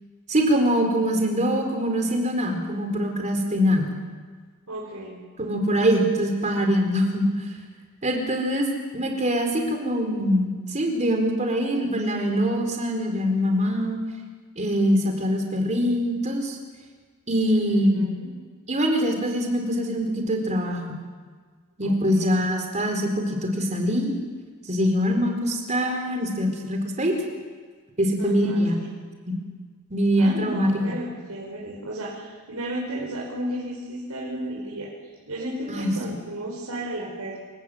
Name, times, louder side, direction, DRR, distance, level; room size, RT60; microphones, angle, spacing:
voice 1, 0.3-3.9 5.4-7.3 8.0-8.7 8.9-14.0 14.6-16.6 17.3-18.1 18.7-20.8 21.8-24.1 24.7-27.2 28.0-28.8 29.3-29.4 29.9-30.7 35.7-35.9, equal, 35° right, 3 dB, 4.2 m, -23 dB
voice 2, 4.7-5.2 17.6-18.3 21.8-22.4 28.2-28.6 30.2-34.9 35.3-37.4, right 1 dB, 85° right, -5 dB, 5.3 m, -33 dB
27.0 x 17.5 x 8.1 m, 1.5 s
head